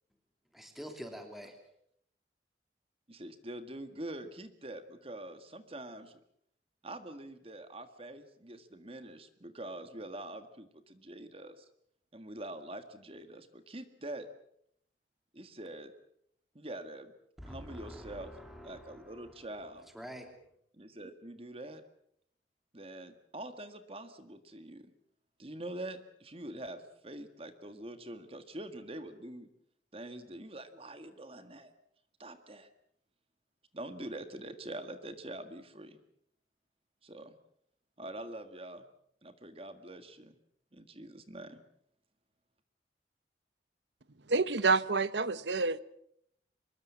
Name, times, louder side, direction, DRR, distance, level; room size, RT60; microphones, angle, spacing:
voice 1, 0.5-1.6 17.4-20.3, equal, ahead, 2.8 m, -47 dB
voice 2, 3.1-6.2 6.8-11.7 12.1-14.3 15.3-15.9 16.5-17.1 17.4-18.3 18.6-19.9 20.7-21.8 22.7-24.9 25.4-29.5 29.9-31.7 32.2-32.7 33.7-36.0 37.0-37.3 38.0-38.8 39.2-40.3 40.7-41.6, right 1 dB, 30° right, 1.7 m, -45 dB
voice 3, 44.3-45.8, right 4 dB, 75° right, 1.0 m, -28 dB
25.0 x 21.5 x 7.3 m
head